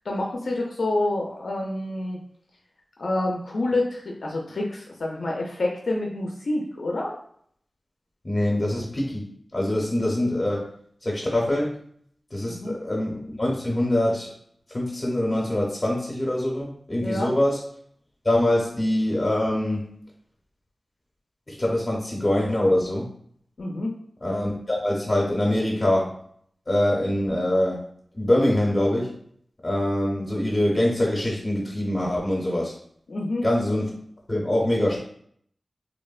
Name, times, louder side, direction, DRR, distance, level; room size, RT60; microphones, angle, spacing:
voice 1, 0.1-2.2 3.0-7.1 12.5-12.7 17.0-17.3 23.6-24.0 33.1-33.4, left 2 dB, 85° left, -1 dB, 0.4 m, -27 dB
voice 2, 8.2-9.2 9.5-10.7 11.0-11.7 12.3-14.3 14.7-17.6 18.2-19.9 21.5-23.1 24.2-26.1 26.7-27.8 28.1-29.2 29.6-32.7 33.4-33.9 34.3-35.0, left 1 dB, 35° left, -3 dB, 0.6 m, -24 dB
3.0 x 2.1 x 2.3 m, 0.63 s
wide cardioid pair, 80°, 0 cm